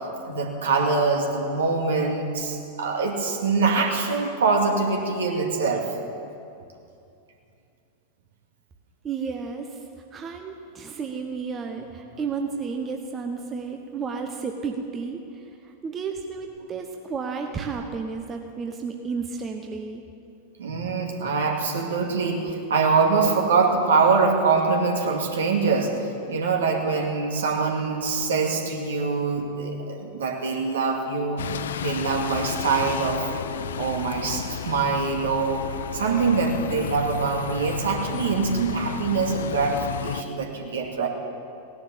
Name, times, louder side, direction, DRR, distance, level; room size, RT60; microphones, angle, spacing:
voice 1, 0.2-5.8 20.6-25.9 26.3-31.5 31.8-33.3 33.8-35.7 35.9-41.1, right 4 dB, 65° right, 1 dB, 2.2 m, -24 dB
voice 2, 9.0-9.8 10.1-20.0, right 5 dB, 25° right, 3 dB, 1.1 m, -32 dB
Bus, 31.4-40.2, left 8 dB, 65° left, 0.5 m, -33 dB
17.5 x 11.0 x 7.0 m, 2.6 s
figure-of-eight pair, 90°, 0 cm